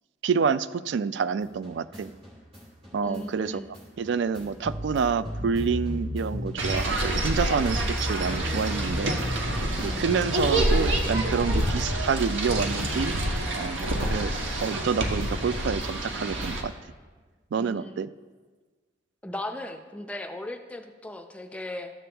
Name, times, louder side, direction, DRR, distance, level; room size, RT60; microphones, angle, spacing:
voice 1, 0.2-2.1 2.9-3.6 4.0-9.2 9.8-13.2 13.5-14.4 14.6-16.7 17.5-18.1, right 6 dB, 65° right, 15 dB, 0.3 m, -28 dB
sound 1, 1.4-13.7 14.0-16.8, equal, 30° right, 2.3 m, -35 dB
voice 2, 3.0-3.7 9.8-10.2 17.6-18.1 19.2-21.9, left 1 dB, 5° left, 5 dB, 0.5 m, -37 dB
sound 2, 6.6-16.6, right 1 dB, 90° right, 1.2 m, -28 dB
13.5 x 7.0 x 3.4 m, 1.4 s
head